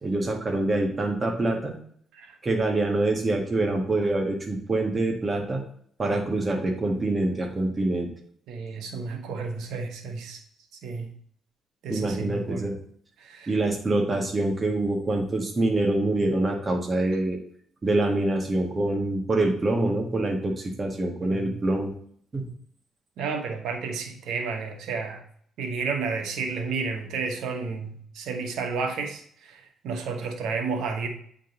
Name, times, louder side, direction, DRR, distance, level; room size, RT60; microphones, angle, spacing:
voice 1, 0.0-1.7 2.4-5.6 6.0-8.1 11.9-12.8 13.5-17.4 17.8-21.9 22.3-22.5, right 2 dB, 30° right, 2 dB, 1.8 m, -25 dB
voice 2, 8.5-10.4 10.8-11.1 11.8-12.7 13.2-13.5 21.2-21.6 23.2-25.2 25.6-29.6 29.8-31.1, right 4 dB, 85° right, 5 dB, 1.2 m, -31 dB
8.9 x 4.0 x 3.9 m, 0.62 s
cardioid pair, 90°, 0 cm